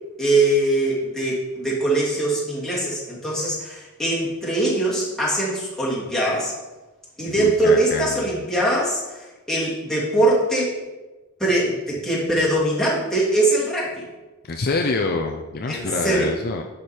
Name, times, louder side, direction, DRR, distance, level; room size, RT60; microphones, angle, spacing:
voice 1, 0.2-6.5 7.2-10.8 11.4-14.0 15.7-16.3, right 1 dB, ahead, -7 dB, 2.7 m, -22 dB
voice 2, 7.4-8.3 14.4-16.6, left 3 dB, 45° left, 3 dB, 0.6 m, -26 dB
11.0 x 5.2 x 4.4 m, 1.1 s
head